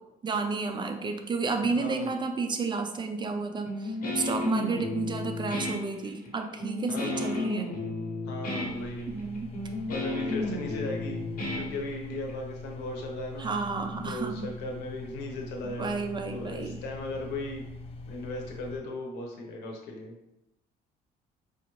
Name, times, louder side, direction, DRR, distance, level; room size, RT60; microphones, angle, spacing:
voice 1, 0.2-7.7 9.1-9.7 13.4-14.5 15.6-16.8, right 4 dB, 25° right, 5 dB, 0.5 m, -32 dB
voice 2, 1.6-2.1 4.5-4.8 6.9-7.6 8.3-9.1 9.9-11.2 11.5-13.5 14.0-17.6 18.1-20.2, left 2 dB, 90° left, 1 dB, 0.9 m, -37 dB
Guitar, 3.7-12.3, left 2 dB, 55° left, 1.3 m, -33 dB
sound 1, 8.6-18.8, left 2 dB, 35° left, 0.4 m, -43 dB
4.8 x 2.5 x 3.1 m, 0.89 s
cardioid pair, 110°, 17 cm